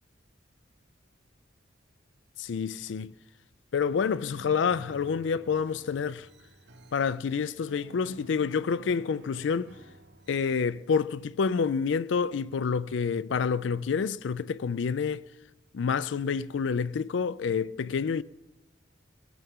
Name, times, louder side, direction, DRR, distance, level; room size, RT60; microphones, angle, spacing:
voice 1, 2.4-3.1 3.7-6.3 6.9-9.7 10.3-15.2 15.7-18.2, left 6 dB, 75° left, 0.4 m, -28 dB
sound 1, 3.8-10.6, right 1 dB, 60° right, 0.8 m, -51 dB
21.0 x 14.0 x 3.7 m
head